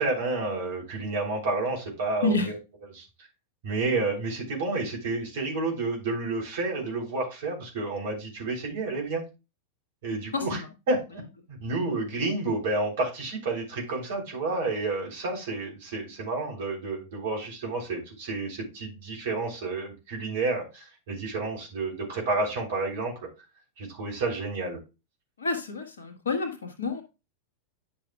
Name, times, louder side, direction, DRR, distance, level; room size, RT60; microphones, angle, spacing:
voice 1, 0.0-2.6 2.9-3.1 3.6-9.2 10.0-11.2 11.5-23.1 23.8-24.8, right 3 dB, 55° right, -1 dB, 3.5 m, -30 dB
voice 2, 25.4-27.0, left 3 dB, 70° left, 4 dB, 1.7 m, -28 dB
10.5 x 6.4 x 2.4 m, 0.28 s
figure-of-eight pair, 90°, 0 cm